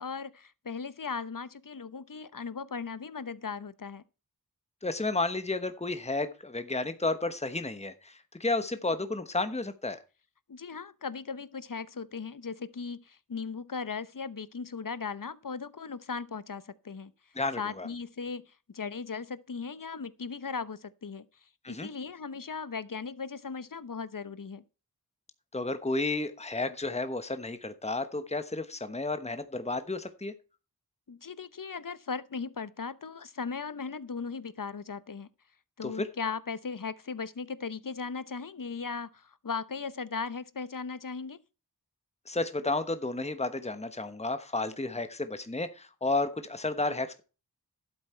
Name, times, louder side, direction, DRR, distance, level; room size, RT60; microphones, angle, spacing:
voice 1, 0.0-4.0 10.5-17.1 17.6-18.4 18.7-21.2 21.7-24.6 31.1-35.3 35.8-41.4, left 5 dB, 60° left, 0.9 m, -37 dB
voice 2, 4.8-10.0 17.4-17.9 21.6-21.9 25.5-30.3 35.8-36.1 42.3-47.2, left 2 dB, 15° left, 1.1 m, -32 dB
11.5 x 8.3 x 4.4 m
wide cardioid pair, 45°, 38 cm